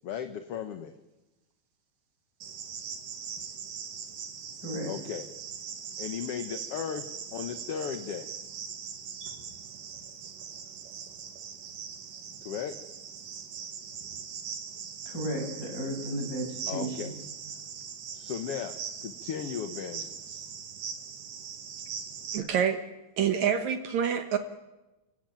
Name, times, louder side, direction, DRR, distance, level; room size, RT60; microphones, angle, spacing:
voice 1, 0.0-0.9 4.8-5.2 6.0-8.3 12.4-12.8 16.7-17.1 18.1-20.4, left 8 dB, 60° left, 9 dB, 1.6 m, -36 dB
Cricket, 2.4-22.4, right 7 dB, 80° right, 3.7 m, -41 dB
voice 2, 15.1-17.1, right 1 dB, 25° left, 1 dB, 7.0 m, -34 dB
voice 3, 22.3-22.8 23.2-24.4, right 8 dB, 65° right, 8 dB, 2.3 m, -27 dB
30.0 x 17.5 x 9.1 m, 1.1 s
omnidirectional pair, 3.8 m